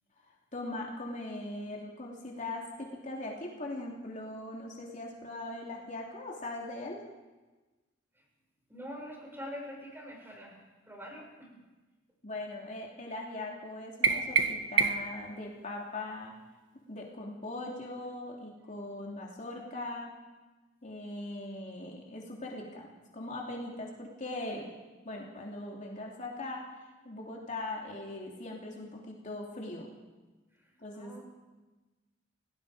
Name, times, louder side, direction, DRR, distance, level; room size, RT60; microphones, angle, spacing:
voice 1, 0.5-7.0 12.2-16.3 16.9-20.1 20.8-24.7 25.0-26.6 27.0-29.9 30.8-31.2, left 2 dB, 40° left, -1 dB, 3.0 m, -40 dB
voice 2, 8.7-10.6 10.9-11.5 30.9-31.3, equal, 10° right, -1 dB, 6.0 m, -44 dB
sound 1, 14.0-15.2, right 5 dB, 85° right, 1.4 m, -27 dB
29.5 x 18.0 x 5.0 m, 1.2 s
head